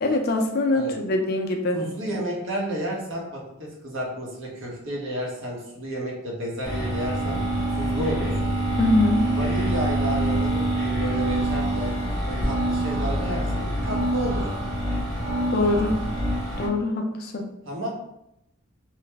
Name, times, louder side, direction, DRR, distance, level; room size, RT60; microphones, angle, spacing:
voice 1, 0.0-1.8 8.8-9.3 15.5-16.0 16.6-17.5, left 2 dB, 45° left, 3 dB, 0.4 m, -23 dB
voice 2, 1.7-7.4 7.7-8.4 9.3-11.9 12.2-14.5 17.7-17.9, equal, 60° right, -2 dB, 0.8 m, -31 dB
sound 1, 6.6-16.7, right 1 dB, 85° right, 1.4 m, -25 dB
3.1 x 2.0 x 3.3 m, 0.83 s
head